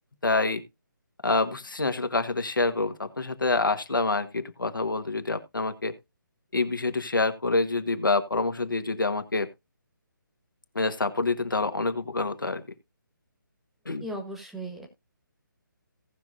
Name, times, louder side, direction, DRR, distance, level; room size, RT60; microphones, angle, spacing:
voice 1, 0.2-0.6 1.2-6.0 6.5-9.5 10.7-12.6 13.8-14.0, left 3 dB, 70° left, 9 dB, 1.4 m, -27 dB
voice 2, 14.0-14.9, right 1 dB, ahead, 1 dB, 1.5 m, -36 dB
17.5 x 6.0 x 2.6 m, 0.22 s
figure-of-eight pair, 145°, 11 cm